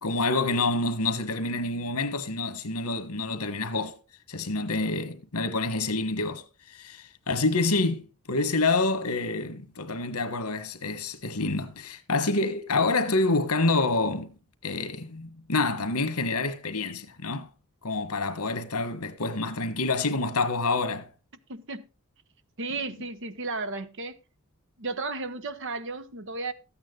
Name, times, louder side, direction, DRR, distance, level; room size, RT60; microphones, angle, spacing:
voice 1, 0.0-4.0 4.3-6.4 6.7-14.3 14.6-17.5 17.8-21.1, left 3 dB, 85° left, 1.5 m, -27 dB
voice 2, 21.5-21.8 22.6-24.2 24.8-26.5, right 3 dB, 55° right, 1.1 m, -34 dB
13.5 x 8.9 x 3.9 m
head